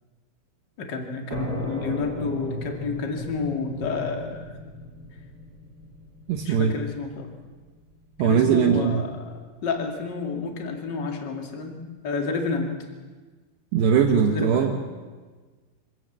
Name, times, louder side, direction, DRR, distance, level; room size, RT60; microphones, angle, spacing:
voice 1, 0.8-4.6 6.4-7.3 8.2-12.8 14.1-14.8, left 4 dB, 35° left, 3 dB, 2.0 m, -30 dB
sound 1, 1.3-8.7, equal, 25° right, 2.8 m, -37 dB
voice 2, 6.3-6.8 8.2-9.0 13.7-14.7, right 7 dB, 70° right, 3 dB, 3.1 m, -20 dB
25.5 x 17.5 x 7.5 m, 1.4 s
omnidirectional pair, 5.5 m